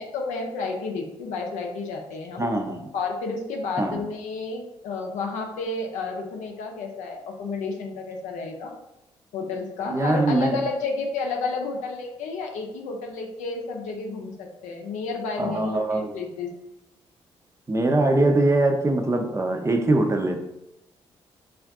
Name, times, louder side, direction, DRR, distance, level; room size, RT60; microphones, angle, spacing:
voice 1, 0.0-2.5 2.9-8.7 9.3-16.5, left 4 dB, 80° left, 1 dB, 0.5 m, -31 dB
voice 2, 2.4-2.8 3.8-4.0 9.9-10.6 15.4-16.1 17.7-20.4, right 2 dB, 20° right, 4 dB, 0.5 m, -22 dB
2.5 x 2.4 x 3.4 m, 0.88 s
supercardioid pair, 55°, 13 cm